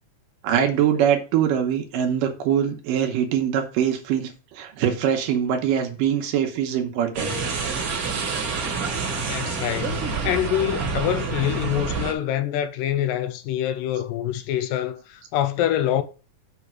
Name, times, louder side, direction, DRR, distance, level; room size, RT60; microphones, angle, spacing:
voice 1, 0.4-7.3 7.9-8.0, right 9 dB, 80° right, 2.5 m, -23 dB
sound 1, 7.1-12.1, right 4 dB, 50° right, 1.6 m, -27 dB
voice 2, 9.3-16.0, left 11 dB, 85° left, 2.3 m, -25 dB
7.0 x 3.4 x 6.1 m
omnidirectional pair, 3.9 m